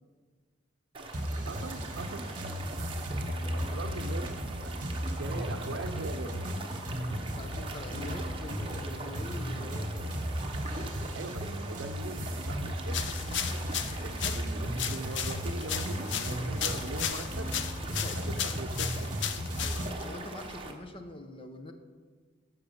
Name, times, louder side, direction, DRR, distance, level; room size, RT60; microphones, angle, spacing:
sound 1, 0.9-20.7, right 2 dB, 30° right, 1.0 m, -42 dB
sound 2, 1.1-19.9, equal, 45° right, 1.2 m, -35 dB
voice 1, 1.5-2.3 3.5-6.5 11.1-13.2 13.9-17.7 18.1-19.1, right 3 dB, 70° right, 8 dB, 0.7 m, -41 dB
voice 2, 3.6-4.0 5.3-5.9 7.0-10.2 14.1-14.4 17.9-18.5 19.6-21.7, left 1 dB, 30° left, 7 dB, 0.8 m, -44 dB
sound 3, 12.9-20.1, left 9 dB, 70° left, 0.6 m, -35 dB
13.0 x 6.1 x 5.3 m, 1.5 s
head